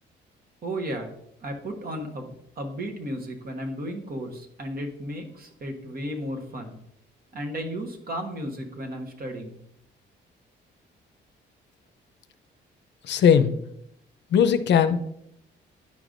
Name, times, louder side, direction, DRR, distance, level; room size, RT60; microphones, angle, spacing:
voice 1, 0.6-1.1 1.4-6.8 7.3-9.6, equal, 50° right, 4 dB, 1.3 m, -34 dB
voice 2, 13.1-13.5 14.3-15.0, left 8 dB, 65° left, 11 dB, 0.5 m, -19 dB
10.0 x 4.9 x 2.5 m, 0.75 s
cardioid pair, 90°, 20 cm